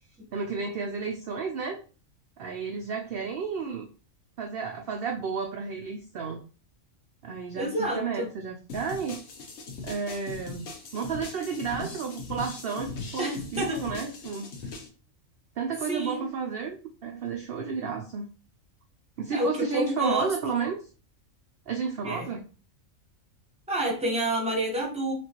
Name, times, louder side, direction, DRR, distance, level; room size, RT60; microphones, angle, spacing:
voice 1, 0.3-1.8 2.4-3.9 4.4-6.4 7.2-7.7 8.0-9.2 9.8-10.7 10.9-14.5 15.6-18.3 19.2-20.8 21.7-22.4, right 5 dB, 60° right, 3 dB, 0.6 m, -32 dB
voice 2, 7.5-8.3 13.2-13.8 15.9-16.3 19.3-20.3 22.0-22.3 23.7-25.1, right 1 dB, 5° right, -1 dB, 0.9 m, -29 dB
sound 1, 8.7-14.9, left 3 dB, 60° left, 1.1 m, -39 dB
5.9 x 2.4 x 3.0 m, 0.36 s
omnidirectional pair, 1.4 m